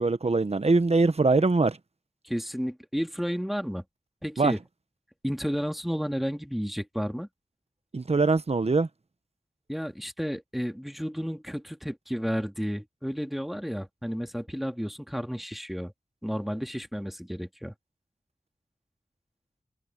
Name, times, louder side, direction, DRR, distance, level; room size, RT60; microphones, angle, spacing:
voice 1, 0.0-1.8 4.4-4.5 7.9-8.9, right 3 dB, 50° right, 1.1 m, -22 dB
voice 2, 2.2-3.8 4.2-4.6 5.2-7.3 9.7-15.9 16.2-17.7, equal, ahead, 2.2 m, -32 dB
wide cardioid pair, 60°, 14 cm